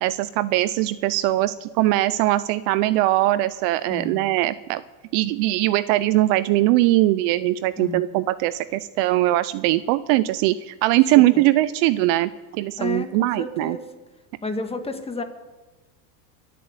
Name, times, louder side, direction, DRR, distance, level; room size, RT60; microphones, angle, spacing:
voice 1, 0.0-4.8 5.1-13.8, right 16 dB, 45° right, 16 dB, 0.6 m, -21 dB
voice 2, 3.9-4.3 7.8-8.1 12.8-13.8 14.4-15.2, left 3 dB, 10° left, 7 dB, 1.7 m, -31 dB
22.5 x 7.7 x 8.0 m, 1.2 s
supercardioid pair, 115°, 50 cm